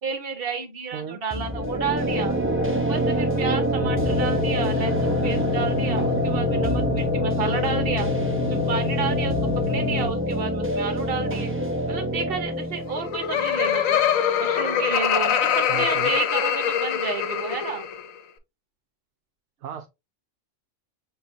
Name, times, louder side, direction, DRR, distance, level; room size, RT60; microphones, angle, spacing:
voice 1, 0.0-2.3 2.7-8.1 8.5-11.5 11.9-14.0 14.4-17.8, right 5 dB, 50° right, 1.1 m, -31 dB
sound 1, 1.3-15.0, right 1 dB, 20° right, 0.4 m, -26 dB
sound 2, 3.8-10.1, left 10 dB, 55° left, 1.0 m, -28 dB
Laughter, 12.8-18.1, left 9 dB, 75° left, 1.1 m, -23 dB
voice 2, 15.7-16.1 19.6-19.9, right 8 dB, 65° right, 0.8 m, -34 dB
6.7 x 2.4 x 2.7 m
omnidirectional pair, 1.4 m